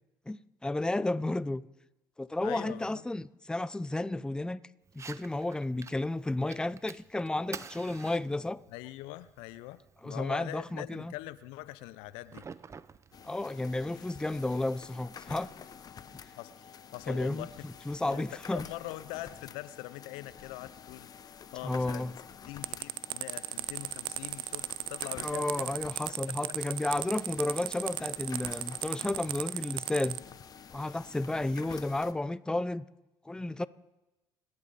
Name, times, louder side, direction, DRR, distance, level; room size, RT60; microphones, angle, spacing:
voice 1, 0.3-1.6 2.2-4.6 4.9-8.6 10.0-11.1 13.2-15.5 17.1-17.5 17.9-18.7 21.6-22.1 25.2-30.2 30.7-32.8 33.2-33.7, left 2 dB, 10° left, 0.6 m, -32 dB
voice 2, 2.4-3.0 8.7-12.5 16.4-17.5 18.1-22.1 22.5-25.7 26.3-26.4, left 16 dB, 75° left, 0.7 m, -43 dB
Fire, 4.9-13.9, right 5 dB, 30° right, 0.8 m, -50 dB
sound 1, 13.1-32.1, left 7 dB, 45° left, 1.1 m, -49 dB
sound 2, 22.6-30.2, right 15 dB, 65° right, 0.5 m, -35 dB
29.0 x 11.0 x 4.1 m
hypercardioid pair, 65°, 9 cm